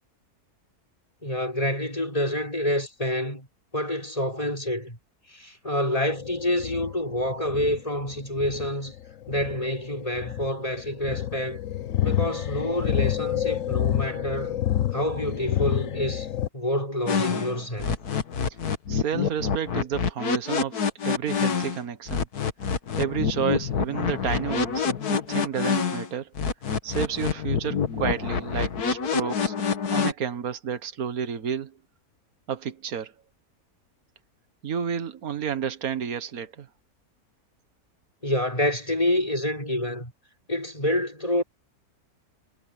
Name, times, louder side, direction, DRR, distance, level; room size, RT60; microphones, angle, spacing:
voice 1, 1.2-3.5 3.7-5.0 5.3-8.9 9.3-11.6 12.0-14.6 14.9-16.3 16.5-18.0 38.2-40.1 40.5-41.4, left 1 dB, 20° left, 6.5 m, -27 dB
sound 1, 6.1-16.5, left 11 dB, 60° left, 1.2 m, -29 dB
sound 2, 17.1-21.8 22.1-26.1 26.4-30.1, left 6 dB, 80° left, 2.1 m, -26 dB
voice 2, 18.9-22.3 23.0-26.3 26.8-29.5 29.9-31.7 32.5-33.1 34.6-36.7, right 8 dB, 70° right, 1.8 m, -31 dB
omnidirectional pair, 1.6 m